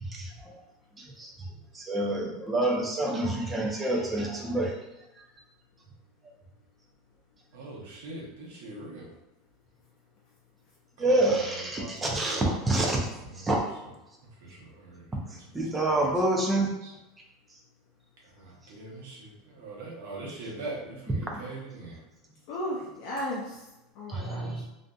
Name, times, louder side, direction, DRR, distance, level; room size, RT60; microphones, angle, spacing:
voice 1, 1.7-4.7 11.0-13.0 13.4-13.6 15.5-16.7 21.3-21.4 24.1-24.6, right 1 dB, 10° right, -1 dB, 0.4 m, -27 dB
voice 2, 7.5-9.1 11.1-13.5 14.4-15.5 15.8-16.0 16.8-16.9 18.2-22.0, right 2 dB, 80° right, -4 dB, 0.8 m, -42 dB
voice 3, 22.5-23.7 23.9-24.6, equal, 50° left, -4 dB, 0.4 m, -35 dB
2.5 x 2.5 x 2.2 m, 0.97 s
supercardioid pair, 165°, 0 cm